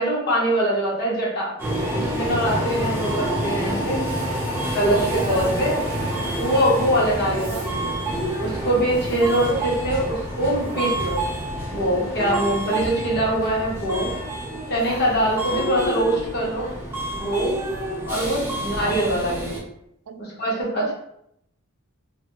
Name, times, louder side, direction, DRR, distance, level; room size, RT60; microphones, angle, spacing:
voice 1, 0.0-1.5 2.0-4.0 4.7-5.8 6.3-7.9 8.4-11.2 11.7-14.1 14.7-16.7 17.1-17.5 18.0-19.6 20.2-20.8, right 1 dB, 50° left, -5 dB, 1.0 m, -23 dB
Subway metro underground, 1.6-19.6, right 1 dB, 10° right, 0.6 m, -28 dB
voice 2, 4.9-5.4 7.3-7.7 20.1-20.2 20.8-20.9, right 5 dB, 80° right, 9 dB, 0.3 m, -33 dB
2.6 x 2.5 x 2.9 m, 0.76 s
head